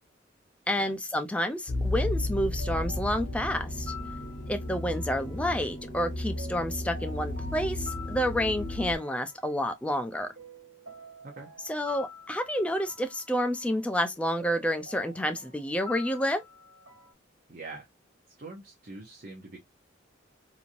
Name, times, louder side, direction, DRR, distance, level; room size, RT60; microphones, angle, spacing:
voice 1, 0.7-3.9 4.5-10.3 11.6-16.4, equal, 5° left, 0.4 m, -29 dB
sound 1, 1.7-9.0, left 1 dB, 45° left, 0.7 m, -33 dB
sound 2, 2.6-17.1, left 3 dB, 75° right, 1.7 m, -48 dB
voice 2, 17.5-17.9 18.3-19.6, right 3 dB, 45° right, 0.7 m, -44 dB
3.1 x 2.7 x 2.4 m
head